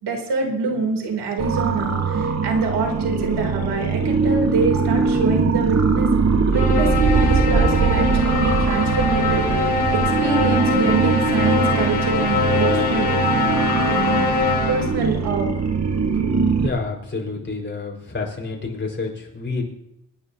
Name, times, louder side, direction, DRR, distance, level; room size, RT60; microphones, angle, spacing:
voice 1, 0.0-6.1 6.5-13.2 13.9-14.2 14.7-15.5, right 4 dB, 90° right, 1 dB, 3.4 m, -25 dB
sound 1, 1.4-16.7, right 4 dB, 40° right, 1.5 m, -21 dB
sound 2, 6.5-15.1, left 4 dB, 50° left, 3.4 m, -23 dB
voice 2, 16.6-19.6, left 4 dB, 30° left, -1 dB, 5.1 m, -28 dB
26.5 x 10.0 x 2.9 m, 0.79 s
cardioid pair, 85°, 39 cm